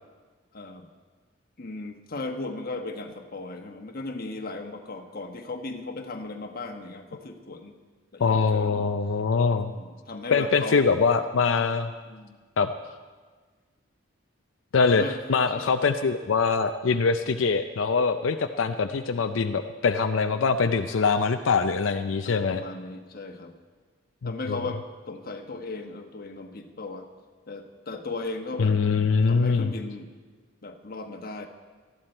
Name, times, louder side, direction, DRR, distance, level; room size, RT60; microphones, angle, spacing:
voice 1, 0.5-0.9 1.6-7.7 8.1-8.9 9.7-11.0 12.0-12.4 14.9-15.2 15.6-15.7 22.2-23.5 24.2-27.1 27.5-28.8 29.2-30.1 30.6-31.5, left 3 dB, 50° left, 4 dB, 1.3 m, -36 dB
voice 2, 8.2-9.7 10.3-11.9 12.6-12.7 14.7-15.0 15.3-22.6 24.2-24.6 28.6-29.7, left 5 dB, 85° left, 7 dB, 0.5 m, -23 dB
19.0 x 13.5 x 4.4 m, 1.4 s
head